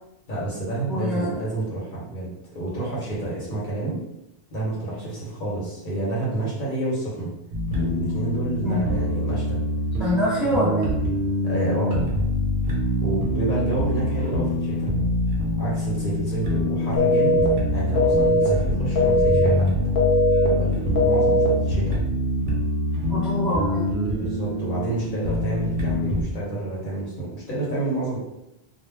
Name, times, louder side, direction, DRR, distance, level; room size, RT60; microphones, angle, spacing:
voice 1, 0.3-4.0 4.5-7.3 7.8-9.6 11.4-12.0 13.0-14.9 15.6-17.5 17.7-19.8 20.4-22.0 24.1-28.2, right 2 dB, 55° left, -6 dB, 1.0 m, -29 dB
voice 2, 0.9-1.3 8.6-8.8 10.0-10.9 23.1-23.9, left 1 dB, ahead, -8 dB, 0.7 m, -24 dB
sound 1, 7.5-26.2, left 1 dB, 60° right, 0.8 m, -25 dB
sound 2, 17.0-17.5 18.0-18.5 19.0-19.5 20.0-20.5 21.0-21.5, left 1 dB, 90° left, 1.0 m, -19 dB
2.2 x 2.2 x 3.2 m, 0.86 s
omnidirectional pair, 1.0 m